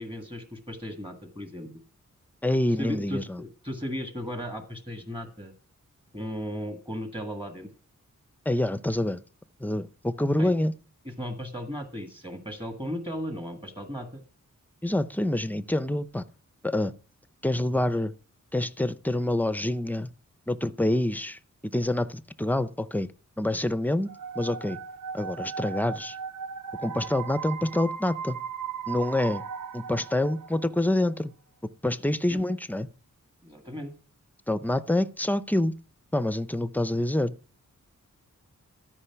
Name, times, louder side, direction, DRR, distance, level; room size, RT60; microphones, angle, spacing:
voice 1, 0.0-1.7 2.8-5.5 6.1-7.7 10.4-10.5 11.0-14.2 32.2-32.4 33.4-33.9, equal, 15° right, 1.6 m, -36 dB
voice 2, 2.4-3.4 8.5-9.2 9.6-10.7 14.8-16.2 16.6-16.9 17.4-18.1 18.5-20.1 20.5-21.4 21.7-23.1 23.4-24.8 25.1-26.2 26.8-28.4 28.9-29.4 29.7-31.3 31.8-32.9 34.5-35.7 36.1-37.3, left 1 dB, 5° left, 0.6 m, -26 dB
sound 1, 24.1-30.9, right 7 dB, 85° right, 0.8 m, -37 dB
13.5 x 5.3 x 5.8 m
wide cardioid pair, 85°, 32 cm